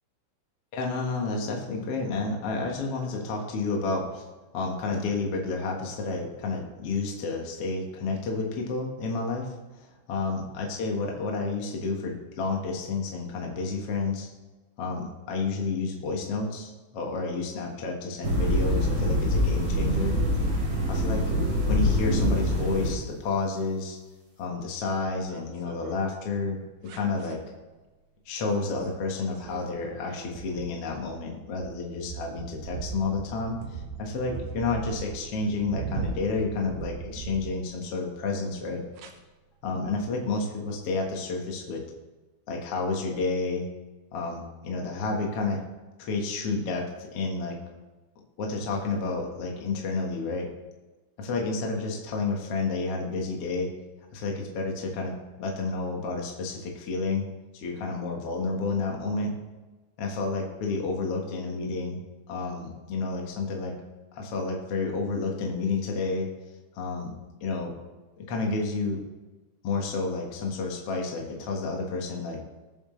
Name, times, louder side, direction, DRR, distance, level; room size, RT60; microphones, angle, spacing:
voice 1, 0.7-4.2 4.5-14.3 14.8-20.2 20.9-21.2 21.7-24.0 24.4-26.6 26.9-27.4 28.2-38.8 39.6-41.8 42.5-43.7 44.1-45.6 46.0-47.6 48.4-50.5 51.2-53.7 54.1-57.2 57.5-59.3 60.0-62.0 62.3-63.8 64.1-66.3 66.7-67.1 67.4-67.7 68.2-69.0 69.6-72.4, left 3 dB, 65° left, 0 dB, 1.5 m, -30 dB
sound 1, 18.2-22.9, equal, 35° right, 3.0 m, -25 dB
sound 2, 25.1-26.0 26.9-27.3 28.6-28.9 29.2-38.0 39.0-39.1, right 6 dB, 70° right, 2.2 m, -39 dB
20.5 x 7.6 x 3.2 m, 1.2 s
omnidirectional pair, 5.0 m